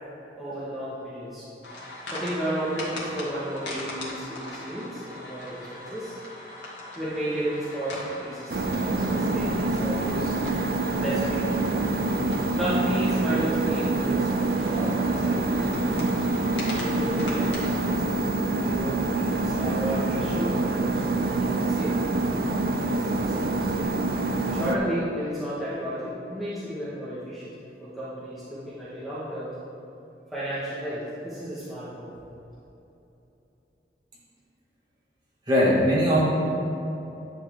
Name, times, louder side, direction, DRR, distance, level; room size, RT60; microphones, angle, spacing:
voice 1, 0.4-1.5 2.0-6.2 6.9-10.3 11.0-11.7 12.5-16.0 16.8-18.2 18.6-22.0 22.8-23.7 24.5-27.4 27.8-29.5 30.3-32.1, right 1 dB, ahead, -12 dB, 1.7 m, -33 dB
sound 1, 1.6-18.0, left 1 dB, 85° left, 2.2 m, -40 dB
sound 2, 8.5-24.8, right 2 dB, 55° right, 0.5 m, -26 dB
voice 2, 35.5-36.2, equal, 25° right, -8 dB, 2.4 m, -20 dB
10.5 x 7.9 x 3.8 m, 3.0 s
head